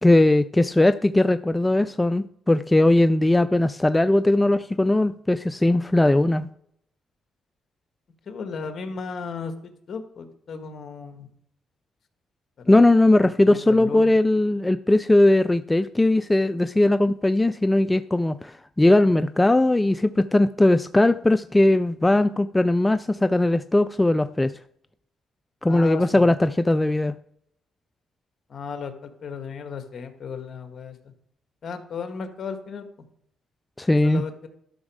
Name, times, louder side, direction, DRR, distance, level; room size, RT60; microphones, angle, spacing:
voice 1, 0.0-6.5 12.7-24.5 25.6-27.1 33.8-34.2, left 1 dB, 15° left, 12 dB, 0.3 m, -19 dB
voice 2, 8.2-11.3 12.6-12.8 13.2-14.1 25.7-26.3 28.5-31.0 31.6-32.9 34.0-34.5, left 5 dB, 50° left, 7 dB, 1.6 m, -35 dB
12.5 x 6.2 x 4.9 m, 0.70 s
cardioid pair, 90°, 0 cm